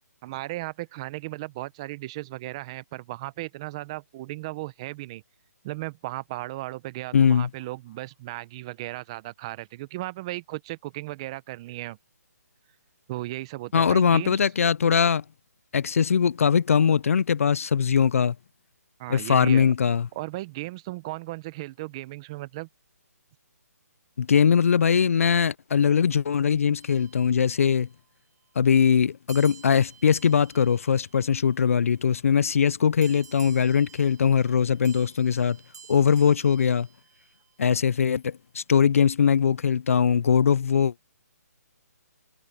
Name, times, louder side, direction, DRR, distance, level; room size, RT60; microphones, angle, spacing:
voice 1, 0.2-5.2 5.6-12.0 13.1-14.4 19.0-19.7 20.1-22.7, right 18 dB, 20° right, 0.7 m, -36 dB
voice 2, 7.1-7.5 13.7-15.2 15.7-18.3 19.1-20.1 24.2-27.9 28.6-35.6 35.9-36.9 37.6-40.9, left 7 dB, 55° left, 0.4 m, -21 dB
sound 1, 26.8-28.0 29.3-32.0 33.0-37.5, right 7 dB, 75° right, 2.2 m, -52 dB
hypercardioid pair, 165°, 9 cm